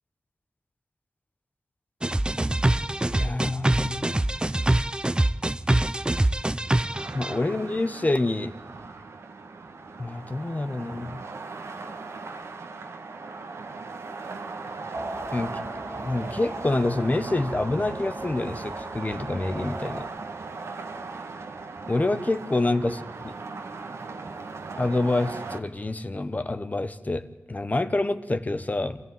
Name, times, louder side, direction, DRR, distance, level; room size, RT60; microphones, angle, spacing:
sound 1, 2.0-7.3, right 1 dB, 20° right, 0.7 m, -24 dB
voice 1, 3.1-4.3 7.1-8.5 10.0-11.2 15.3-15.6 15.9-20.1 21.9-23.3 24.8-29.0, left 2 dB, 35° left, 10 dB, 1.2 m, -27 dB
sound 2, 6.9-25.6, right 4 dB, 85° right, 1.7 m, -38 dB
sound 3, 14.9-20.0, right 1 dB, 70° right, 2.4 m, -38 dB
27.0 x 14.5 x 9.3 m, 1.2 s
cardioid pair, 55°, 5 cm